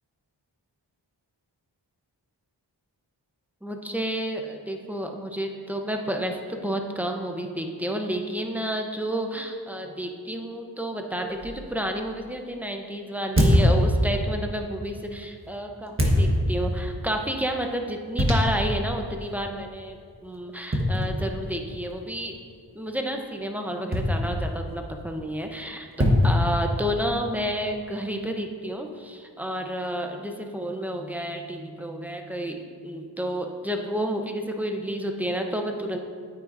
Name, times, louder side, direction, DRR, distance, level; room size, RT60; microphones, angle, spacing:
voice 1, 3.6-22.3 22.7-36.0, equal, 5° right, 3 dB, 0.8 m, -30 dB
sound 1, 11.4-11.6 13.4-14.4 16.0-16.8 18.2-18.8 19.3-19.4 20.7-21.6 23.9-24.7 26.0-27.1, left 1 dB, 30° right, 1.3 m, -22 dB
8.8 x 8.7 x 2.6 m, 2.1 s
wide cardioid pair, 45°, 44 cm